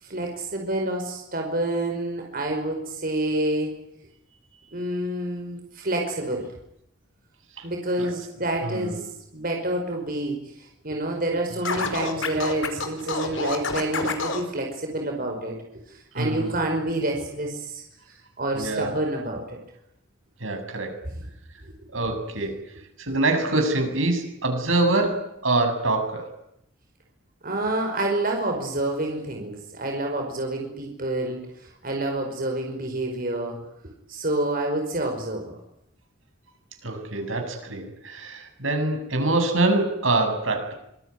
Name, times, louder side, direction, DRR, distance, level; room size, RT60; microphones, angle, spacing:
voice 1, 0.0-3.8 4.7-6.5 7.6-9.0 9.3-10.4 10.8-15.6 15.9-17.8 18.4-19.6 27.4-33.6 34.1-35.6, right 1 dB, 45° right, 2 dB, 5.2 m, -28 dB
voice 2, 8.6-9.0 16.1-16.6 18.5-19.0 20.4-21.0 21.9-22.6 23.0-26.3 36.8-40.7, right 2 dB, 80° right, 5 dB, 7.6 m, -25 dB
Scratching (performance technique), 11.6-14.4, left 4 dB, 75° left, 4.8 m, -28 dB
26.0 x 22.0 x 9.8 m, 0.79 s
head